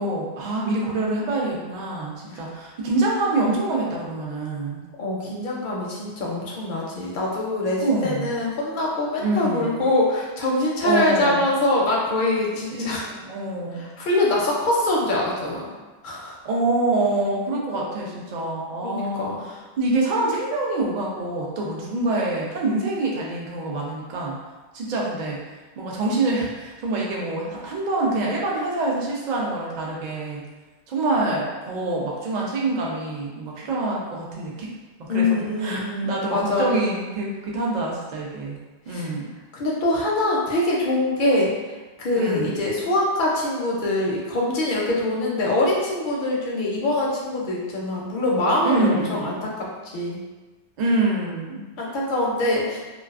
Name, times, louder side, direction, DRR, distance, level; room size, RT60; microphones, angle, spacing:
voice 1, 0.0-4.8 7.8-8.3 9.2-9.8 10.8-11.5 12.7-13.9 16.4-24.4 24.7-25.4 25.8-30.5 30.9-34.7 35.0-38.6 38.9-39.3 42.2-42.7 48.6-49.4 50.8-51.6, right 2 dB, 55° right, -3 dB, 0.5 m, -26 dB
voice 2, 5.0-13.0 13.8-15.7 16.0-16.4 18.8-19.4 35.1-36.8 38.9-39.1 39.5-49.5 49.8-50.2 51.8-52.8, left 2 dB, 60° left, -3 dB, 0.6 m, -24 dB
2.3 x 2.3 x 2.3 m, 1.2 s
omnidirectional pair, 1.1 m